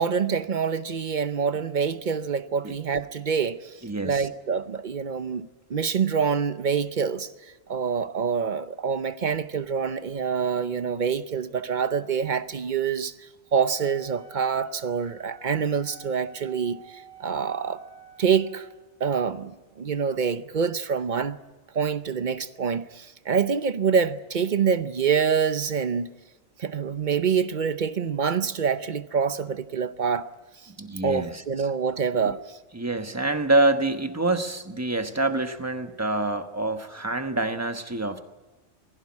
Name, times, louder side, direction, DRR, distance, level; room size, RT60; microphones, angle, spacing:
voice 1, 0.0-3.7 4.0-7.3 7.7-13.1 13.5-17.8 18.2-18.7 19.0-21.4 21.7-26.1 26.6-30.3 31.0-32.4, right 6 dB, 45° right, 0.8 m, -26 dB
voice 2, 3.8-4.3 30.8-31.4 32.2-32.3 32.7-38.2, right 2 dB, 15° right, 1.1 m, -26 dB
Wind instrument woodwind instrument, 13.7-18.8, right 4 dB, 50° left, 2.2 m, -50 dB
20.0 x 16.0 x 9.7 m
omnidirectional pair, 1.2 m